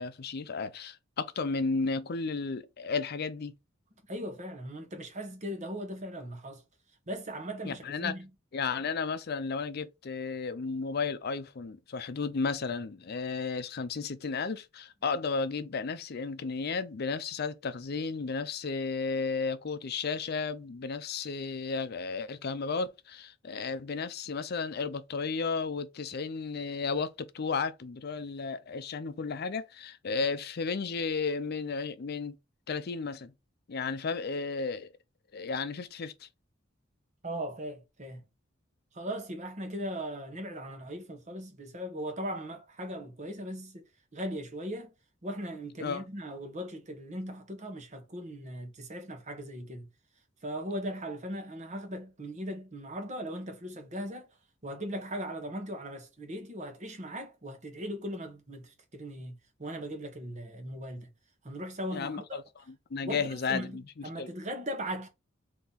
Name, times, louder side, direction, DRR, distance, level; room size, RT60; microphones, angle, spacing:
voice 1, 0.0-3.5 7.6-8.1 8.5-32.3 32.7-33.3 33.7-34.9 35.3-36.3 45.8-46.0 61.9-62.4 62.9-64.3, left 4 dB, 55° left, 0.5 m, -33 dB
voice 2, 4.1-6.6 7.1-8.3 37.2-38.2 38.9-43.8 44.1-44.9 45.2-49.9 50.4-54.3 54.6-61.1 61.4-62.4 63.0-65.1, equal, 40° right, 1.1 m, -38 dB
3.8 x 2.9 x 4.0 m
head